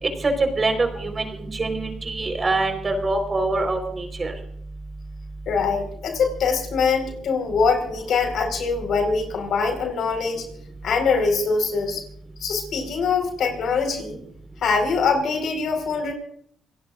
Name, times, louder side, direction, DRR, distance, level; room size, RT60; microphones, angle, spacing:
voice 1, 0.0-4.3, right 2 dB, 30° right, 5 dB, 4.3 m, -24 dB
voice 2, 5.5-10.4 10.8-12.0 12.4-14.2 14.6-16.1, left 5 dB, 70° left, 5 dB, 4.7 m, -23 dB
27.5 x 17.0 x 2.5 m, 0.67 s
cardioid pair, 90°, 0 cm